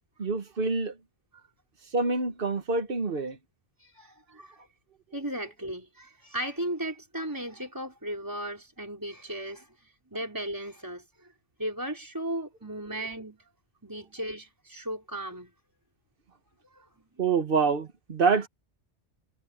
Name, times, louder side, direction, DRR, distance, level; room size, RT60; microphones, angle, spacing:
voice 1, 0.2-1.0 1.9-3.4 17.2-18.5, right 4 dB, 50° right, 1.5 m, -26 dB
voice 2, 3.8-4.6 5.1-11.3 11.6-13.4 13.8-15.5 16.6-16.9, right 1 dB, 15° right, 5.0 m, -36 dB
omnidirectional pair, 1.2 m